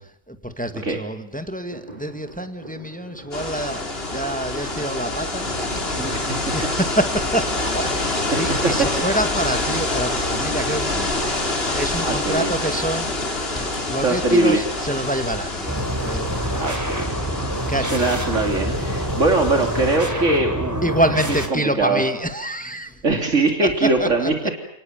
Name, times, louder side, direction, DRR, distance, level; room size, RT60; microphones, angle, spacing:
voice 1, 0.0-11.4 11.7-13.2 13.6-16.4 17.7-18.2 20.8-23.0 23.6-24.5, right 1 dB, 5° left, 8 dB, 2.0 m, -27 dB
sound 1, 1.3-9.6 10.1-10.2, right 1 dB, 30° right, 5.6 m, -42 dB
sound 2, 3.3-20.0, left 2 dB, 45° left, 3.8 m, -26 dB
voice 2, 12.0-12.5 14.0-14.6 16.3-17.2 17.8-20.9 21.5-22.0 23.0-24.3, right 2 dB, 65° right, 3 dB, 3.1 m, -21 dB
sound 3, 15.7-21.5, equal, 15° right, 3.3 m, -26 dB
30.0 x 19.0 x 8.9 m, 0.83 s
omnidirectional pair, 1.4 m